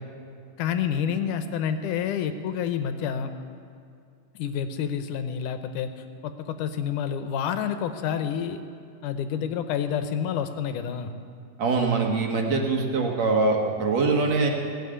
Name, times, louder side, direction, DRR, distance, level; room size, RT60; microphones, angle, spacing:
voice 1, 0.6-3.3 4.4-5.9 6.2-8.6 9.0-11.1, left 8 dB, 75° left, 8 dB, 2.0 m, -28 dB
voice 2, 11.6-14.5, right 3 dB, 55° right, 1 dB, 2.3 m, -23 dB
18.0 x 7.4 x 9.8 m, 2.4 s
omnidirectional pair, 4.2 m